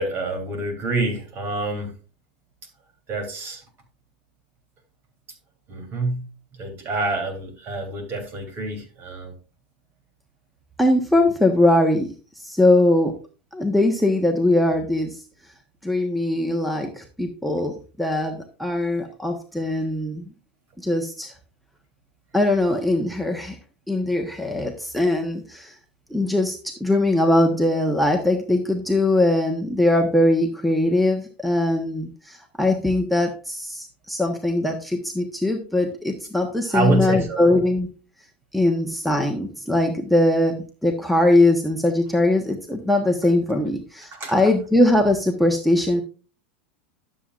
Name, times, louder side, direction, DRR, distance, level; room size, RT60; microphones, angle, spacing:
voice 1, 0.0-1.9 3.1-3.6 5.7-6.2 6.6-9.3 36.7-37.4 44.1-44.3, right 2 dB, 40° right, 3.3 m, -26 dB
voice 2, 10.8-12.1 12.4-13.1 13.5-15.2 15.8-20.3 20.8-21.3 22.3-23.6 23.9-25.8 26.1-37.9 38.5-46.0, left 1 dB, ahead, 1.1 m, -21 dB
12.0 x 7.4 x 2.5 m
hypercardioid pair, 110°, 5 cm